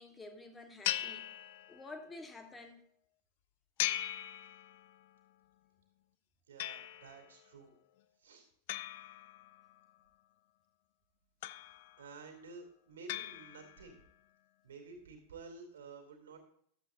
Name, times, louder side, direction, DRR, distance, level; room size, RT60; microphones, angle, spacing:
voice 1, 0.0-1.4 1.7-2.8, left 2 dB, 15° left, 1.4 m, -50 dB
sound 1, 0.8-2.1 3.8-5.1 6.6-7.3 8.7-9.8 11.4-12.1 13.1-14.0, left 13 dB, 50° left, 0.4 m, -40 dB
voice 2, 6.5-7.7 8.2-8.5 12.0-14.0 14.6-16.4, right 4 dB, 65° right, 2.5 m, -52 dB
12.0 x 7.8 x 3.8 m
figure-of-eight pair, 90°, 0 cm